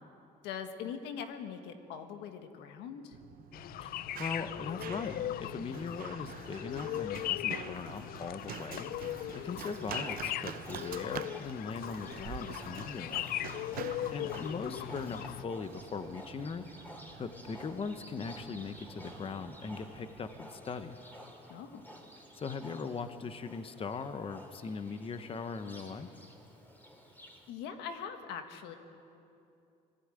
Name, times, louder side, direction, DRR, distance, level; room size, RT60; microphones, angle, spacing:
voice 1, 0.4-3.2 21.5-21.8 27.5-28.8, left 7 dB, 90° left, 7 dB, 1.6 m, -42 dB
Run, 3.1-20.4, right 11 dB, 60° right, 0.6 m, -47 dB
sound 1, 3.5-15.4, left 13 dB, 60° left, 0.4 m, -39 dB
voice 2, 3.8-13.2 14.1-16.6 17.2-21.0 22.3-26.1, left 5 dB, 35° left, 9 dB, 1.0 m, -40 dB
Livestock farm animals working animals, 9.6-27.5, equal, 10° left, 3.3 m, -52 dB
20.5 x 15.5 x 9.0 m, 2.7 s
cardioid pair, 110°, 17 cm